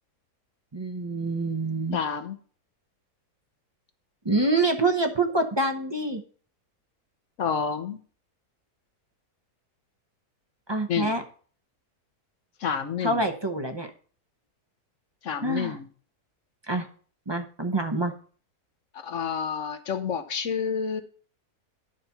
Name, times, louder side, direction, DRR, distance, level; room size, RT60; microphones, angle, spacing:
voice 1, 0.7-2.0 4.2-6.2 10.7-11.2 13.0-13.9 15.4-15.8 16.7-16.9 17.3-18.1, right 2 dB, 25° right, 5 dB, 0.7 m, -26 dB
voice 2, 1.9-2.4 7.4-8.0 10.9-11.1 12.6-13.2 15.2-15.9 19.0-21.0, left 7 dB, 55° left, 8 dB, 1.1 m, -29 dB
11.5 x 4.2 x 5.7 m, 0.43 s
omnidirectional pair, 1.7 m